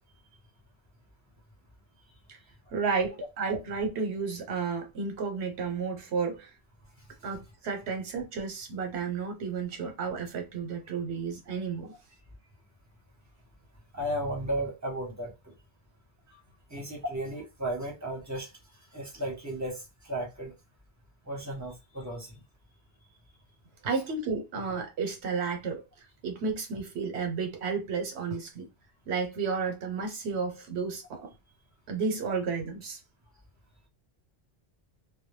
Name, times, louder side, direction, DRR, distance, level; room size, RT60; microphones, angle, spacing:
voice 1, 2.7-6.5 7.2-11.9 23.8-28.7 29.1-31.3 31.9-33.0, right 5 dB, 80° right, 1.0 m, -32 dB
voice 2, 13.9-15.3 16.7-18.5 18.9-20.5 21.2-22.3, right 1 dB, 20° right, 0.8 m, -34 dB
2.2 x 2.0 x 3.1 m
omnidirectional pair, 1.1 m